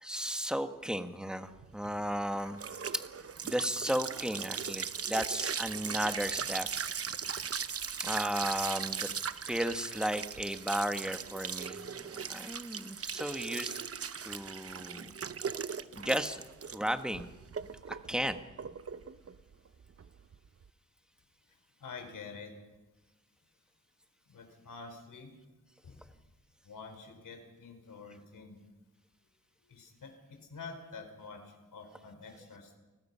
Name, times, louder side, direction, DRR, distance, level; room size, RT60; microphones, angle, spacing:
voice 1, 0.0-2.6 3.4-6.7 8.0-9.1 9.5-13.8 14.2-15.1 16.0-16.4 16.7-17.3 18.1-18.4, equal, ahead, 8 dB, 1.3 m, -34 dB
sound 1, 1.6-20.7, right 6 dB, 45° right, 0.8 m, -39 dB
voice 2, 21.8-22.5 24.3-25.3 25.8-26.0 26.6-28.6 29.7-31.4 31.7-32.8, left 4 dB, 80° left, 5 dB, 4.9 m, -47 dB
29.0 x 20.0 x 5.6 m, 1.1 s
wide cardioid pair, 120°, 32 cm